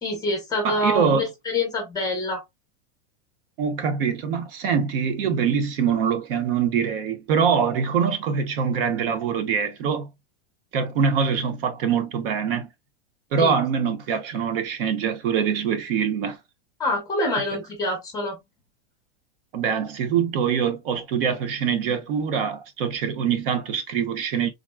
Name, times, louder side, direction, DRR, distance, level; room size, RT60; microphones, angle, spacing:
voice 1, 0.0-2.4 13.4-13.6 16.8-18.4, left 1 dB, 10° left, 0.6 m, -26 dB
voice 2, 0.6-1.2 3.6-10.1 10.7-12.7 13.3-16.4 19.5-24.5, right 6 dB, 55° right, 0.8 m, -24 dB
3.6 x 2.0 x 2.2 m
supercardioid pair, 170°, 33 cm